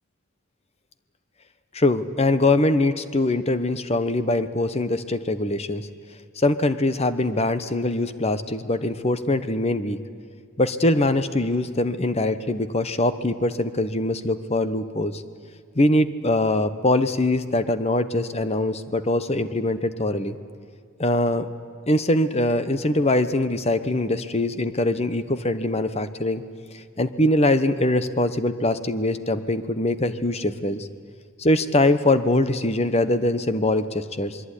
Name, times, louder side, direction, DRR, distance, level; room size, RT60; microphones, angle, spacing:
voice 1, 1.7-5.9 6.4-10.0 10.6-15.2 15.8-20.4 21.0-21.5 21.9-26.4 27.0-30.9 31.4-34.4, left 1 dB, 30° left, 12 dB, 1.0 m, -22 dB
26.5 x 22.0 x 10.0 m, 2.2 s
head